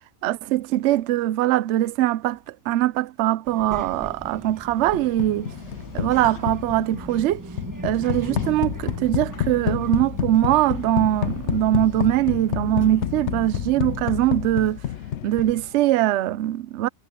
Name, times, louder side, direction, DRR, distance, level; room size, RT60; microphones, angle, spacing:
voice 1, 0.2-5.5 5.9-7.4 7.8-14.8 15.2-16.9, right 14 dB, 65° right, 0.8 m, -22 dB
Child speech kid speaking, 3.5-14.2, right 2 dB, 15° right, 1.2 m, -39 dB
sound 1, 4.9-15.8, left 11 dB, 65° left, 0.9 m, -29 dB
omnidirectional pair, 1.4 m